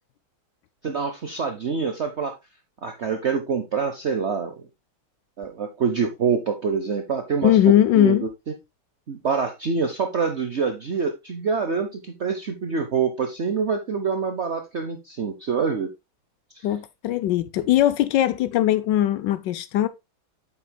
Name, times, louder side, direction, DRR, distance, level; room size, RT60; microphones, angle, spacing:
voice 1, 0.8-2.4 2.8-4.7 5.4-8.3 9.1-15.9 16.6-16.7, right 5 dB, 60° right, 0.7 m, -26 dB
voice 2, 7.4-8.3 16.6-19.9, left 12 dB, 75° left, 1.1 m, -20 dB
8.6 x 7.3 x 2.2 m
omnidirectional pair, 2.2 m